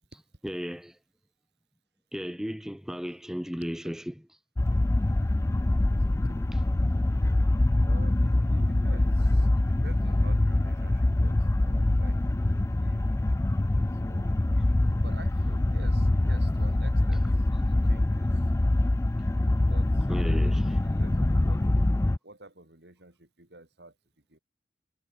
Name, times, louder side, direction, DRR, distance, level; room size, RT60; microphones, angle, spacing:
voice 1, 0.4-1.0 2.1-4.4 14.6-14.7 20.1-20.8, equal, 5° right, 0.8 m, -35 dB
sound 1, 4.6-22.2, left 1 dB, 15° left, 0.3 m, -24 dB
voice 2, 7.8-12.3 12.7-13.0 14.0-14.4 15.0-17.3 17.7-18.4 19.7-21.6 22.2-23.9 24.3-24.4, right 2 dB, 70° right, 4.6 m, -50 dB
head